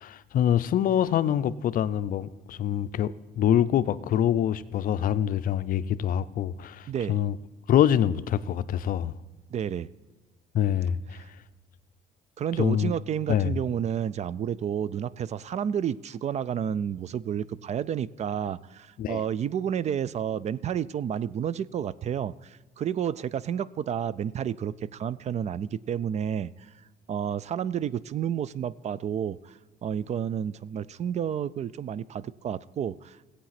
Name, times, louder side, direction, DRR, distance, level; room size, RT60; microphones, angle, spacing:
voice 1, 0.0-7.4 7.7-9.1 10.5-11.2 12.6-12.9 13.3-13.5 19.0-19.2, left 10 dB, 55° left, 14 dB, 0.6 m, -25 dB
voice 2, 6.9-7.2 9.5-9.9 11.1-11.3 12.4-26.7 27.1-33.2, right 9 dB, 40° right, 20 dB, 0.4 m, -30 dB
16.5 x 8.3 x 5.9 m, 1.3 s
cardioid pair, 110°, 17 cm